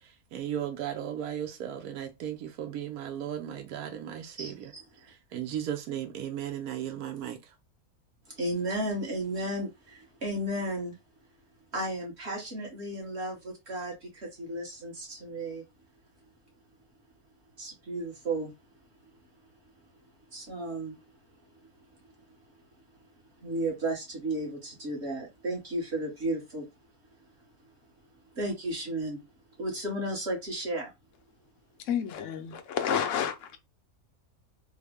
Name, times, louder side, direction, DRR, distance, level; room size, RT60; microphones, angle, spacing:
voice 1, 0.0-4.7 5.0-7.5, right 10 dB, 80° right, 1.2 m, -36 dB
voice 2, 4.4-4.8 8.3-11.0 11.7-15.6 17.6-18.5 20.3-21.0 21.5-21.6 23.4-26.7 27.6-27.7 28.3-29.2 29.6-30.9, right 1 dB, 45° right, 1.6 m, -34 dB
voice 3, 31.8-33.5, left 8 dB, 65° left, 1.0 m, -30 dB
3.6 x 2.1 x 3.4 m
omnidirectional pair, 1.6 m